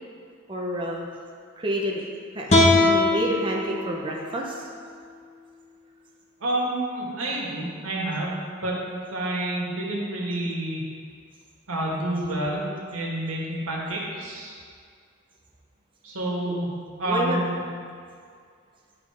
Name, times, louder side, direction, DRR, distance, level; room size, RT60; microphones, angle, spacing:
voice 1, 0.5-1.1 1.6-2.1 2.3-2.5 2.9-4.6 16.4-16.6 17.1-17.4, equal, 25° right, -2 dB, 0.7 m, -28 dB
sound 1, 2.5-5.7, left 2 dB, 30° left, 1.0 m, -23 dB
voice 2, 6.4-8.3 8.6-8.8 9.1-10.8 11.7-12.7 12.9-14.6 16.0-16.7 17.0-17.6, right 1 dB, 85° right, -3 dB, 1.6 m, -28 dB
10.0 x 3.7 x 4.8 m, 2.2 s
head